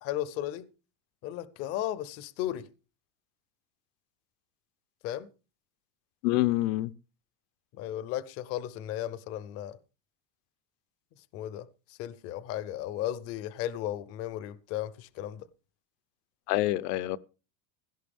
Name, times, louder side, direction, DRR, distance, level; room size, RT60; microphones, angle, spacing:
voice 1, 0.0-0.7 1.2-2.7 5.0-5.3 7.8-9.8 11.3-15.4, left 12 dB, 30° left, 0.5 m, -35 dB
voice 2, 6.2-6.9 16.5-17.2, left 17 dB, 75° left, 0.8 m, -26 dB
16.5 x 12.5 x 3.5 m
cardioid pair, 160°, 48 cm